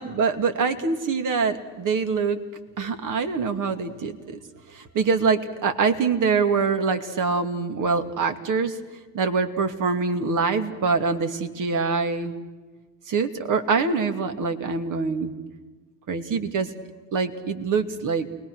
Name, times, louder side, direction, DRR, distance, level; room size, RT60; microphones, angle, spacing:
voice 1, 0.0-2.4 2.8-4.4 4.7-8.8 9.1-12.3 13.1-15.3 16.1-16.7 17.1-18.3, right 5 dB, 40° right, 8 dB, 2.6 m, -24 dB
29.0 x 21.0 x 6.4 m, 1.3 s
hypercardioid pair, 85°, 46 cm